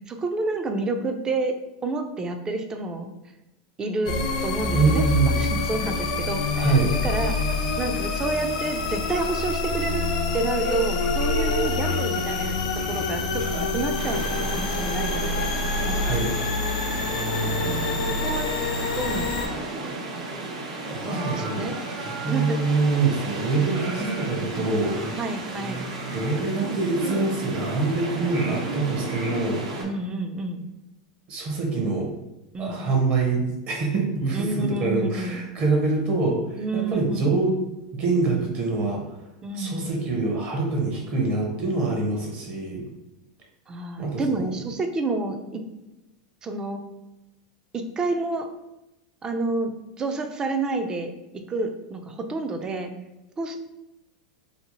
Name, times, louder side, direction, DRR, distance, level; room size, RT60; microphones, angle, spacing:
voice 1, 0.1-1.5 1.8-3.1 3.8-4.1 4.4-5.0 5.4-6.7 7.0-10.1 10.3-12.6 12.9-16.1 17.7-18.0 18.2-18.5 19.0-19.9 21.0-21.9 22.3-22.6 25.2-25.9 29.8-30.6 32.5-32.8 34.3-35.5 36.5-37.5 39.4-39.8 43.7-45.6 46.4-46.8 47.7-48.5 49.2-49.7 50.0-52.9 53.4-53.6, right 2 dB, 20° right, 6 dB, 0.3 m, -29 dB
sound 1, 4.1-19.5, left 3 dB, 85° left, 0.4 m, -26 dB
voice 2, 4.7-5.4 6.6-6.9 16.0-16.3 20.9-21.7 22.0-25.0 26.1-29.7 31.3-32.1 32.6-37.6 37.9-39.2 39.5-42.9 44.0-44.5, right 3 dB, 40° right, 0 dB, 0.7 m, -25 dB
sound 2, 10.6-15.3 15.6-15.8 16.4-16.5 17.1-18.4 18.8-18.9 19.3-19.9 20.2-20.3 20.8-23.2 23.7-27.9 28.3-29.8, right 2 dB, 60° right, 1.1 m, -36 dB
sound 3, 14.0-29.8, right 2 dB, 75° right, 0.6 m, -34 dB
2.7 x 2.0 x 2.9 m, 0.95 s
supercardioid pair, 130°, 4 cm